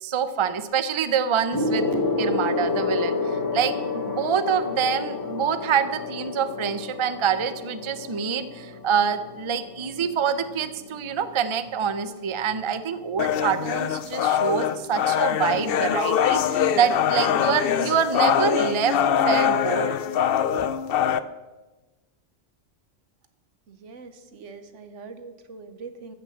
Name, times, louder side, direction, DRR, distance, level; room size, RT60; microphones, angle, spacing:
voice 1, 0.0-18.9 19.2-20.0 20.5-20.7, right 7 dB, 30° right, 12 dB, 0.6 m, -26 dB
Gong, 1.5-11.3 12.2-12.5, left 3 dB, 20° left, 1.0 m, -30 dB
sound 1, 13.2-21.2, left 9 dB, 60° left, 0.7 m, -23 dB
voice 2, 23.7-26.1, right 4 dB, 80° right, 10 dB, 1.4 m, -42 dB
14.0 x 6.5 x 7.7 m, 1.2 s
omnidirectional pair, 1.2 m